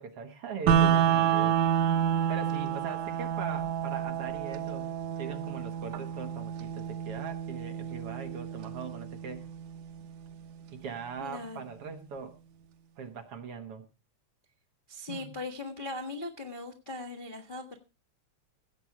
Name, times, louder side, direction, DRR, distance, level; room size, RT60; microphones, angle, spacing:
voice 1, 0.0-1.7 2.3-4.9 5.2-9.5 10.7-12.3 13.0-13.9 15.1-15.3, right 6 dB, 55° right, 6 dB, 2.0 m, -40 dB
sound 1, 0.7-10.7, right 9 dB, 85° right, 2.6 m, -29 dB
voice 2, 11.2-11.7 14.9-17.8, left 2 dB, 30° left, 0 dB, 0.8 m, -39 dB
17.0 x 7.9 x 4.7 m, 0.33 s
omnidirectional pair, 3.4 m